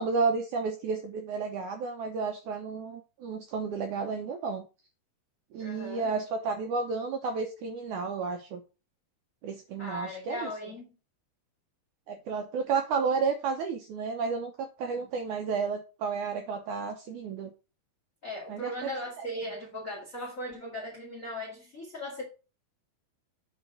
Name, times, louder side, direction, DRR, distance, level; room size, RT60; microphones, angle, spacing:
voice 1, 0.0-4.7 5.5-8.6 9.4-10.5 12.1-17.5 18.5-18.9, right 5 dB, 75° right, 1.9 m, -32 dB
voice 2, 5.6-6.1 9.8-10.8 14.8-15.0 18.2-22.2, left 1 dB, 30° left, 1.6 m, -38 dB
8.4 x 3.8 x 5.8 m
omnidirectional pair, 4.5 m